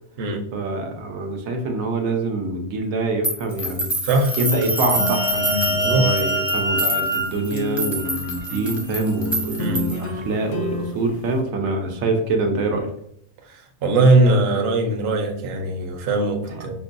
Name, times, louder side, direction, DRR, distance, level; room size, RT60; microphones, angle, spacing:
voice 1, 0.5-3.9 4.4-12.9 16.5-16.7, right 2 dB, 85° right, 4 dB, 1.1 m, -25 dB
sound 1, 3.2-10.1, right 1 dB, ahead, 0.5 m, -27 dB
voice 2, 4.0-4.3 5.8-6.1 9.6-9.8 13.8-16.8, right 2 dB, 60° right, 3 dB, 0.8 m, -20 dB
sound 2, 4.2-8.7, right 1 dB, 80° left, 2.1 m, -26 dB
sound 3, 4.9-7.1 7.5-11.4, left 2 dB, 65° left, 0.8 m, -30 dB
5.3 x 2.2 x 2.5 m, 0.72 s
omnidirectional pair, 1.4 m